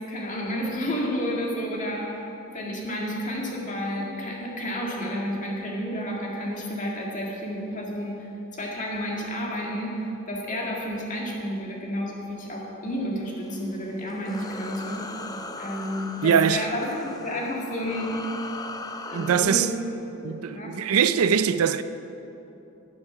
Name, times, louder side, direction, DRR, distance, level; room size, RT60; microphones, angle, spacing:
voice 1, 0.1-2.2 2.5-15.1 15.6-18.1 19.1-19.7 20.2-21.4, equal, 35° left, 2.0 m, -31 dB
sound 1, 13.4-19.4, left 3 dB, 15° left, 0.5 m, -38 dB
voice 2, 16.2-16.7 19.1-19.7 20.2-21.8, right 7 dB, 75° right, 0.4 m, -22 dB
11.0 x 10.5 x 5.7 m
head